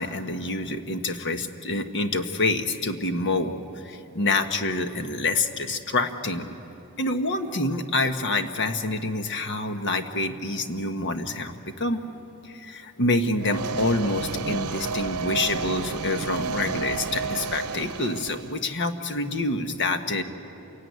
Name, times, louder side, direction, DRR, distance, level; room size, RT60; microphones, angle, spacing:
voice 1, 0.0-3.5 3.8-6.5 7.0-12.0 12.5-20.2, left 2 dB, 55° left, 7 dB, 1.3 m, -27 dB
sound 1, 13.4-18.6, right 5 dB, 80° right, 0.8 m, -31 dB
28.0 x 17.5 x 9.4 m, 2.9 s
head